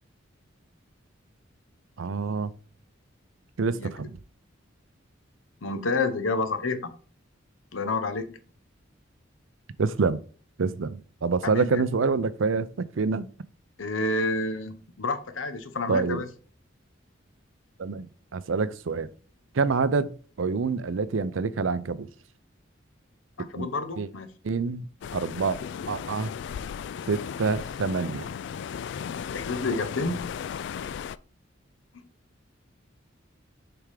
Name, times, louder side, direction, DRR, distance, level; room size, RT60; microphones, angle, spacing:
voice 1, 2.0-2.5 3.6-4.2 9.8-10.2 10.6-13.3 15.9-16.2 17.8-18.1 18.3-19.1 19.5-22.1 23.4-23.7 24.0-24.1 24.4-24.9 25.1-25.6 25.9-26.3 27.1-28.3, right 4 dB, 80° right, 0.5 m, -27 dB
voice 2, 5.6-6.9 7.7-8.4 11.4-11.8 13.8-16.3 23.4-24.3 29.3-30.3, left 3 dB, 85° left, 0.9 m, -29 dB
sound 1, 25.0-31.2, left 7 dB, 60° left, 0.3 m, -36 dB
6.8 x 3.5 x 4.9 m
head